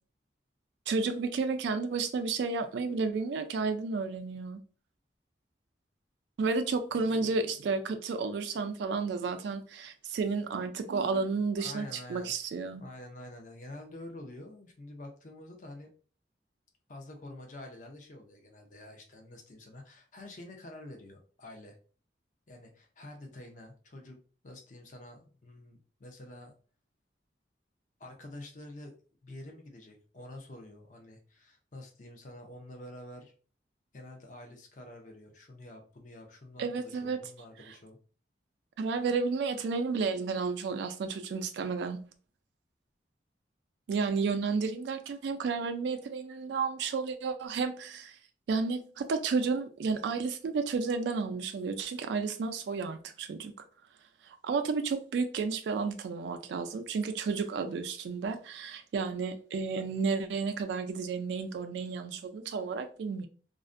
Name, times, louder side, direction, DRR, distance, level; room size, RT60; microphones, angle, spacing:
voice 1, 0.9-4.6 6.4-12.8 36.6-37.2 38.8-42.0 43.9-48.2 48.5-53.5 54.2-63.3, right 4 dB, 75° right, 0.3 m, -32 dB
voice 2, 11.6-12.3 12.7-15.9 16.9-21.8 22.5-26.5 28.0-28.9 29.2-33.3 33.9-38.0, left 1 dB, 45° left, 0.5 m, -48 dB
2.4 x 2.1 x 2.4 m
head